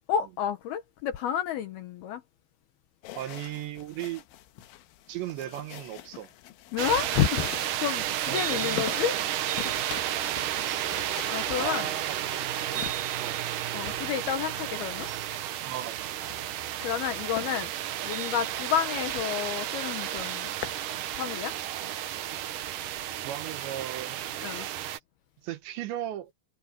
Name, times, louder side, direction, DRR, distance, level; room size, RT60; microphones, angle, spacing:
voice 1, 0.1-2.2 6.7-9.2 9.6-9.7 11.2-11.9 13.7-15.1 16.8-17.7 18.0-20.5 21.1-21.5 24.4-24.7, left 9 dB, 70° left, 2.6 m, -30 dB
sound 1, 3.0-14.7 16.0-17.0 17.4-17.5 18.0-18.2 18.6-18.7 19.0-19.1 19.4-19.8 20.2-20.9, left 14 dB, 90° left, 3.6 m, -44 dB
voice 2, 3.1-4.2 5.1-6.3 8.3-9.1 11.6-12.2 13.2-13.4 15.6-16.0 23.1-24.2 24.5-25.0 25.4-26.3, right 12 dB, 75° right, 3.3 m, -37 dB
sound 2, 6.8-25.0, right 12 dB, 90° right, 1.8 m, -32 dB
omnidirectional pair, 5.5 m